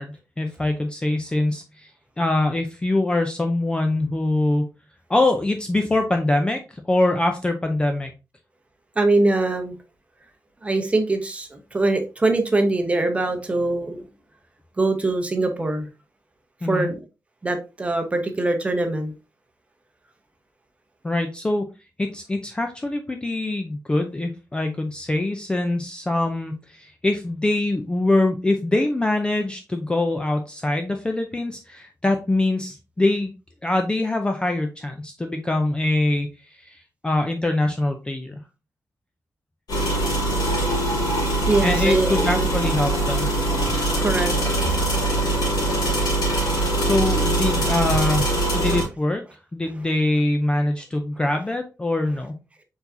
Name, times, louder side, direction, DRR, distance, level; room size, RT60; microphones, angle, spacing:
voice 1, 0.0-1.9 2.2-4.7 5.1-8.1 16.6-16.9 21.0-21.6 22.0-33.3 33.6-38.4 41.6-43.3 46.8-48.3 48.5-49.2 49.5-52.3, left 2 dB, 15° left, 0.4 m, -23 dB
voice 2, 9.0-9.7 10.6-14.0 14.8-15.9 16.7-16.9 17.4-19.1 41.3-42.5 43.5-45.0, right 2 dB, 20° right, 0.8 m, -23 dB
sound 1, 39.7-48.8, right 1 dB, 70° left, 2.4 m, -22 dB
4.6 x 4.0 x 2.6 m
wide cardioid pair, 160°, 7 cm